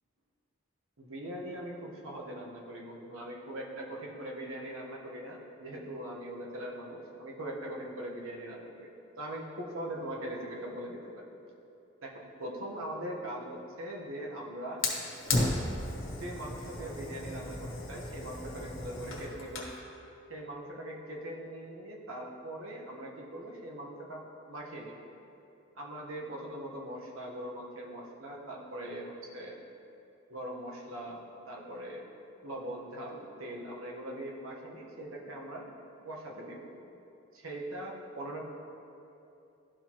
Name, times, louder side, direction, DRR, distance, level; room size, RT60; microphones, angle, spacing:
voice 1, 1.0-8.9 9.2-11.3 12.0-14.9 16.0-19.7 20.3-25.1 25.7-29.6 30.3-32.0 32.4-35.7 36.0-36.7 37.3-38.4, right 1 dB, 85° right, -2 dB, 1.1 m, -41 dB
Fire, 14.8-19.8, left 2 dB, 70° left, 1.1 m, -34 dB
12.5 x 4.4 x 2.9 m, 2.8 s
head